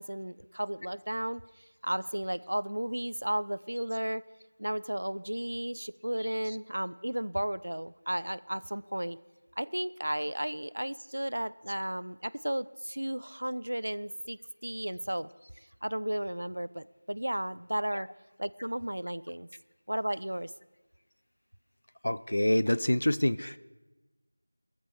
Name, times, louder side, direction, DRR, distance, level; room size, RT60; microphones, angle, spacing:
voice 1, 0.0-1.4 1.8-4.2 4.6-9.2 9.6-15.3 15.8-18.1 18.4-19.5 19.9-20.5, right 1 dB, 65° right, 19 dB, 0.5 m, -34 dB
voice 2, 22.0-23.6, left 1 dB, 55° left, 17 dB, 0.5 m, -26 dB
19.0 x 13.5 x 4.7 m, 1.2 s
figure-of-eight pair, 175°, 0 cm